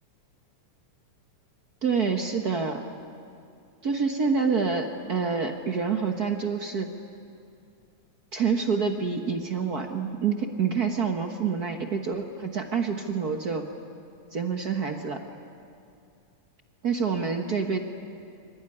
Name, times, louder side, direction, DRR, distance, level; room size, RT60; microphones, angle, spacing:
voice 1, 1.8-2.9 3.8-6.9 8.3-13.7 14.3-15.2 16.8-17.8, right 5 dB, 50° right, 4 dB, 1.2 m, -27 dB
25.0 x 23.5 x 9.9 m, 2.5 s
omnidirectional pair, 3.4 m